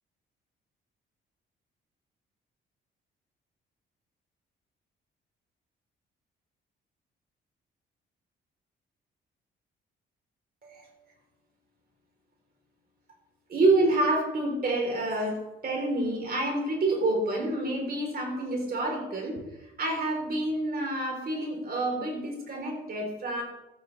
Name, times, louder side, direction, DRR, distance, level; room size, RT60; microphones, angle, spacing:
voice 1, 13.5-23.4, right 2 dB, 50° right, 1 dB, 3.4 m, -28 dB
14.5 x 8.5 x 3.2 m, 0.99 s
cardioid pair, 90°, 20 cm